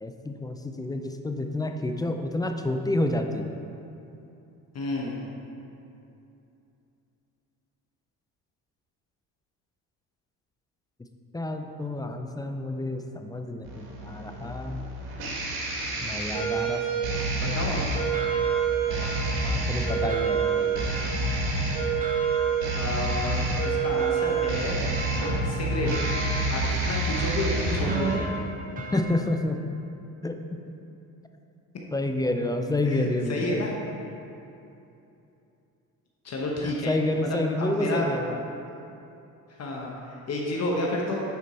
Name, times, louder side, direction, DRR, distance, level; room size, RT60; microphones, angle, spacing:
voice 1, 0.0-3.6 11.3-14.8 16.0-16.8 18.9-20.9 28.9-29.6 30.2-30.4 31.9-33.6 36.6-38.4, left 1 dB, 10° left, 5 dB, 0.4 m, -29 dB
voice 2, 4.7-5.3 17.4-17.8 22.7-24.8 25.4-25.9 26.5-28.4 32.9-33.7 36.2-36.9 37.2-38.1 39.6-41.2, left 2 dB, 40° left, -2 dB, 1.0 m, -31 dB
sound 1, 13.6-28.1, right 4 dB, 75° right, 1.7 m, -27 dB
sound 2, 17.5-29.0, equal, 20° right, 0.9 m, -38 dB
9.5 x 4.3 x 4.2 m, 2.8 s
supercardioid pair, 90°, 38 cm